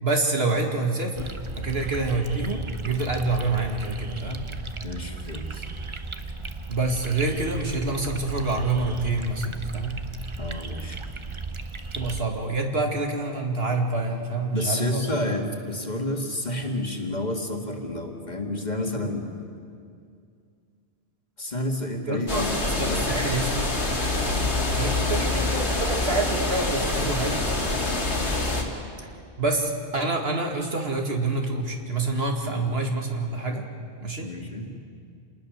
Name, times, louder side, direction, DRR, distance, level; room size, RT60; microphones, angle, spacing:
voice 1, 0.0-4.4 6.7-10.0 11.9-15.0 22.1-23.7 24.7-27.4 29.4-33.7 34.0-34.3, right 2 dB, 65° right, 2 dB, 2.4 m, -27 dB
sound 1, 1.1-12.2, right 3 dB, 30° right, 0.9 m, -35 dB
voice 2, 4.8-5.6 10.4-11.0 14.5-19.3 21.4-22.5 22.8-23.3 26.7-27.1 32.5-32.7 34.2-34.7, left 1 dB, 40° left, 2 dB, 2.2 m, -30 dB
sound 2, 22.3-28.6, left 2 dB, 75° left, 2.9 m, -26 dB
27.5 x 20.0 x 6.6 m, 2.3 s
omnidirectional pair, 1.1 m